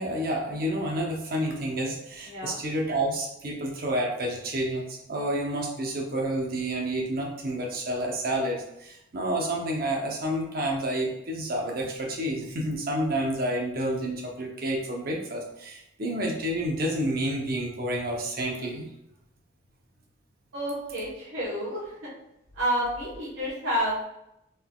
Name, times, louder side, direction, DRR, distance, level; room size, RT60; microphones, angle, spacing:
voice 1, 0.0-18.8, right 1 dB, 45° right, -1 dB, 0.8 m, -29 dB
voice 2, 2.3-2.6 20.5-22.1 22.6-24.0, equal, 80° right, -8 dB, 1.2 m, -29 dB
4.0 x 3.6 x 2.3 m, 0.82 s
head